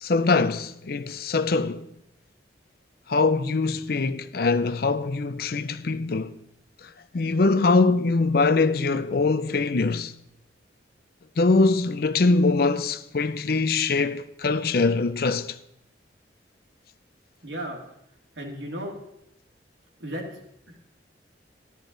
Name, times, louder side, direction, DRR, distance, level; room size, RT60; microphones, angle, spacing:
voice 1, 0.0-1.9 3.1-6.4 6.8-10.1 11.4-15.6, left 3 dB, 55° left, 0.5 m, -23 dB
voice 2, 17.4-17.8 18.4-18.9 20.0-20.4 20.7-20.8, equal, 85° right, 2.5 m, -34 dB
13.5 x 12.0 x 3.9 m
head